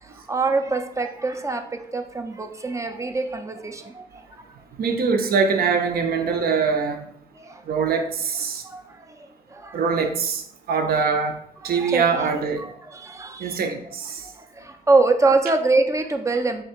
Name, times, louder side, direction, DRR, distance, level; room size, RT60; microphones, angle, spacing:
voice 1, 0.0-4.4 7.4-7.6 8.6-9.8 11.7-13.6 14.2-16.6, right 3 dB, 20° right, 5 dB, 0.4 m, -25 dB
voice 2, 4.8-7.1 7.7-8.6 9.7-10.4 10.7-11.4 11.6-12.7 13.4-14.2, right 5 dB, 70° right, 6 dB, 0.6 m, -23 dB
3.4 x 2.8 x 4.3 m, 0.70 s
cardioid pair, 95°, 16 cm